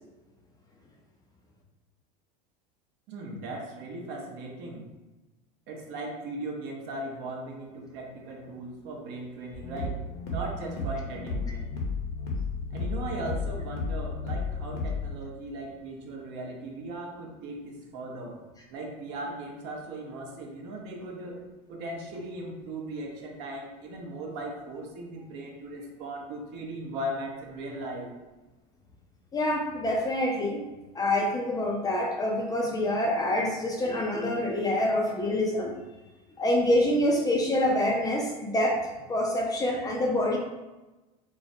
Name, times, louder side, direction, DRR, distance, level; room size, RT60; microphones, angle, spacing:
voice 1, 3.1-4.9 5.7-11.7 12.7-18.4 18.7-21.4 21.7-28.1, right 1 dB, 60° right, 0 dB, 0.6 m, -38 dB
sound 1, 9.5-15.1, left 3 dB, 70° left, 0.7 m, -33 dB
voice 2, 29.3-30.6 31.0-35.7 36.4-40.4, left 1 dB, 20° left, 0 dB, 0.3 m, -26 dB
2.3 x 2.0 x 2.6 m, 1.1 s
supercardioid pair, 105°, 20 cm